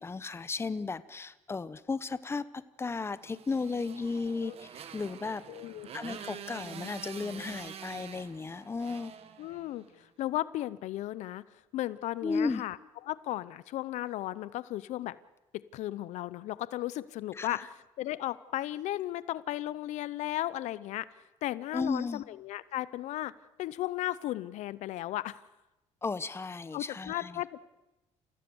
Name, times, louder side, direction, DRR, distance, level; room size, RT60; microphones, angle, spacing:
voice 1, 0.0-5.4 5.9-9.1 12.2-12.6 17.4-17.7 21.7-22.2 26.0-27.4, left 4 dB, 20° left, 15 dB, 0.9 m, -34 dB
Motorcycle, 3.3-10.0, right 8 dB, 55° right, 1.8 m, -46 dB
voice 2, 5.5-5.9 9.4-11.4 11.7-12.8 13.1-15.2 15.7-21.1 21.4-23.3 23.6-25.4 26.7-27.6, left 14 dB, 75° left, 17 dB, 0.7 m, -35 dB
29.0 x 15.5 x 7.1 m, 0.99 s
cardioid pair, 105°, 12 cm